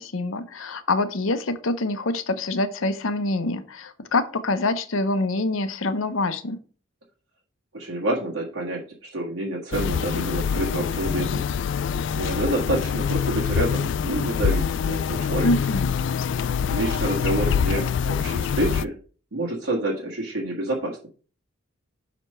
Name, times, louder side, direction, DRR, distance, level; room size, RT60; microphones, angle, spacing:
voice 1, 0.0-6.6 15.4-16.0, left 2 dB, 75° left, 11 dB, 0.8 m, -25 dB
voice 2, 7.7-11.5 12.2-15.5 16.7-18.9 19.3-21.1, right 1 dB, 85° right, -4 dB, 1.8 m, -28 dB
sound 1, 9.7-18.9, left 7 dB, 60° left, 0.3 m, -25 dB
6.0 x 5.1 x 5.5 m, 0.39 s
head